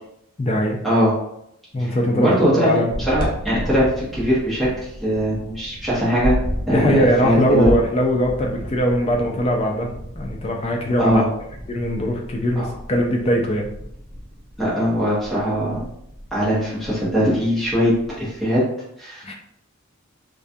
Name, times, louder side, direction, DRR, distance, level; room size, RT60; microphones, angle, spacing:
voice 1, 0.4-0.8 1.7-2.9 6.7-11.2 11.7-13.7 19.2-19.3, equal, 30° left, 1 dB, 0.4 m, -21 dB
voice 2, 1.8-2.7 3.1-4.7 5.0-6.4 6.7-7.7 11.0-11.2 12.6-12.7 14.6-15.8 16.3-18.6 19.0-19.2, equal, ahead, -9 dB, 0.7 m, -20 dB
sound 1, 2.9-18.4, equal, 40° right, 0.5 m, -33 dB
2.3 x 2.2 x 2.6 m, 0.77 s
head